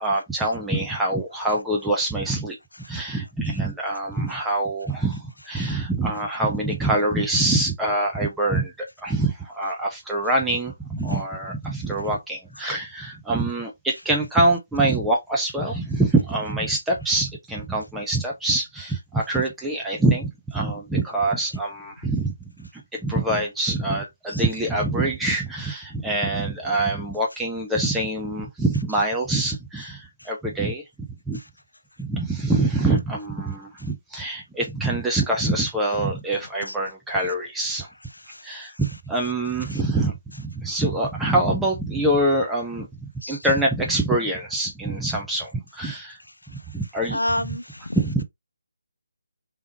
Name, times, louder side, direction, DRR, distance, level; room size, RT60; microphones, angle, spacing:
voice 1, 0.0-2.6 2.9-8.7 9.0-22.3 22.6-30.8 31.3-31.4 32.0-37.9 38.4-42.9 43.3-46.2 46.7-47.2 47.9-48.2, right 2 dB, 5° right, 0.6 m, -25 dB
voice 2, 47.1-48.0, left 1 dB, 80° left, 0.3 m, -28 dB
3.4 x 3.1 x 2.7 m
figure-of-eight pair, 150°, 0 cm